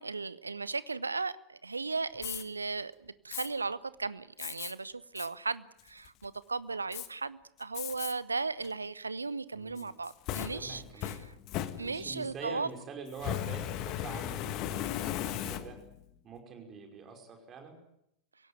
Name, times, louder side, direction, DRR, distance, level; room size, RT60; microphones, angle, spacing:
voice 1, 0.0-11.3 11.8-12.7, right 4 dB, 80° right, 0.9 m, -36 dB
Fire, 2.1-2.4 3.3-3.5 4.4-4.7 5.2-5.3 5.8-6.2 6.9-7.1 7.7-8.1 8.6-8.7 9.8-12.2 13.1-16.0, left 12 dB, 40° left, 1.5 m, -37 dB
voice 2, 9.5-9.9 10.4-11.2 11.8-15.8 16.2-17.8, right 5 dB, 30° right, 5.3 m, -45 dB
25.0 x 17.0 x 9.2 m
figure-of-eight pair, 90°, 0 cm